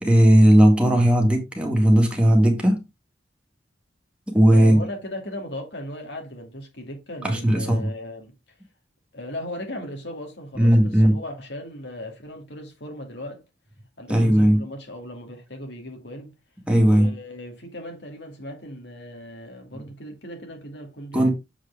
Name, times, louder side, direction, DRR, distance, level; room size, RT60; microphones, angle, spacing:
voice 1, 0.0-2.8 4.3-4.9 7.2-7.9 10.6-11.2 14.1-14.6 16.7-17.1 21.1-21.3, equal, 5° right, 1.9 m, -17 dB
voice 2, 4.5-8.3 9.1-13.4 14.0-16.4 16.9-21.3, left 1 dB, 70° left, 2.4 m, -37 dB
7.3 x 4.9 x 3.5 m
head